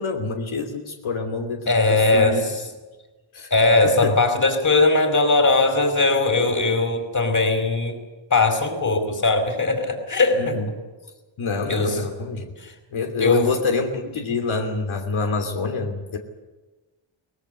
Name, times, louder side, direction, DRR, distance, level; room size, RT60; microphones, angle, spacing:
voice 1, 0.0-2.4 3.3-3.5 3.8-4.1 10.3-10.7 11.4-12.5 12.9-16.2, left 4 dB, 90° left, 3 dB, 3.1 m, -26 dB
voice 2, 1.7-2.4 3.5-7.9 8.3-10.6 11.7-12.0 13.2-13.5, left 3 dB, 40° left, 6 dB, 5.0 m, -19 dB
23.0 x 20.0 x 8.1 m, 1.2 s
wide cardioid pair, 120°, 46 cm